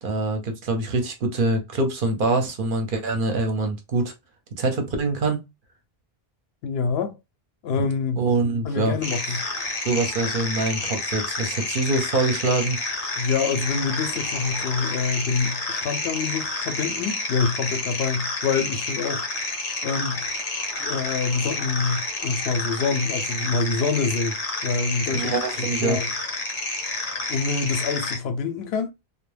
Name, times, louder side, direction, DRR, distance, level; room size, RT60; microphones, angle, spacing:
voice 1, 0.0-4.1 4.6-5.4 8.2-9.0 9.2-9.4 9.8-12.8 25.1-26.0, right 2 dB, 60° right, 0.8 m, -24 dB
voice 2, 6.6-7.2 7.6-8.2 8.6-9.4 13.2-19.2 19.8-20.3 20.8-24.4 24.6-26.1 27.3-28.9, left 5 dB, 80° left, 0.8 m, -26 dB
sound 1, 9.0-28.2, left 2 dB, 45° left, 0.7 m, -29 dB
2.2 x 2.1 x 3.2 m
omnidirectional pair, 1.0 m